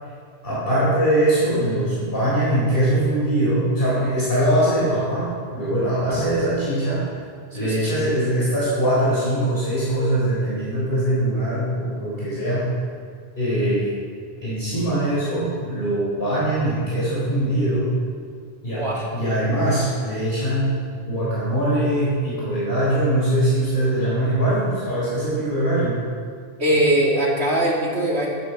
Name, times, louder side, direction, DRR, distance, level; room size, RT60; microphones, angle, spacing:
voice 1, 0.4-7.1 7.5-12.8 13.4-13.9 14.4-17.9 18.6-26.0, right 1 dB, 60° left, -9 dB, 4.8 m, -22 dB
voice 2, 7.6-8.0 18.7-19.1 26.6-28.3, right 1 dB, 90° right, -3 dB, 3.1 m, -21 dB
13.5 x 12.0 x 5.8 m, 2.2 s
omnidirectional pair, 1.1 m